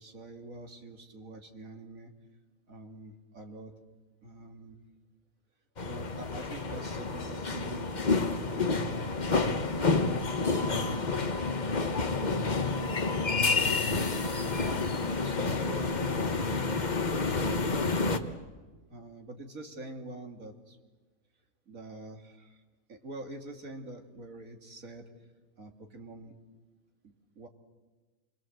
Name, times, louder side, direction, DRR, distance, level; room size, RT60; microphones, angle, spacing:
voice 1, 0.0-2.1 2.7-3.7 4.2-4.8 5.8-11.2 13.4-16.8 17.4-18.0 18.9-20.8 21.7-22.6 22.9-25.0 25.6-26.4 27.4-27.5, right 2 dB, 65° right, 4 dB, 2.6 m, -45 dB
sound 1, 5.8-18.2, left 3 dB, 35° left, 1.2 m, -29 dB
27.5 x 21.5 x 7.8 m, 1.3 s
omnidirectional pair, 1.5 m